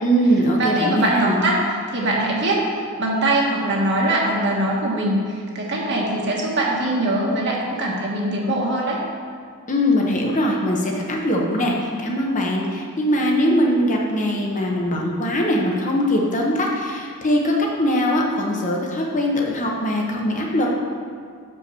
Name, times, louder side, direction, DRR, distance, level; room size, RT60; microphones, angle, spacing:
voice 1, 0.0-1.4 9.7-20.7, equal, 35° left, -1 dB, 1.0 m, -21 dB
voice 2, 0.6-2.6 3.0-9.0, right 1 dB, 50° right, -3 dB, 1.4 m, -22 dB
5.9 x 5.4 x 6.8 m, 2.1 s
head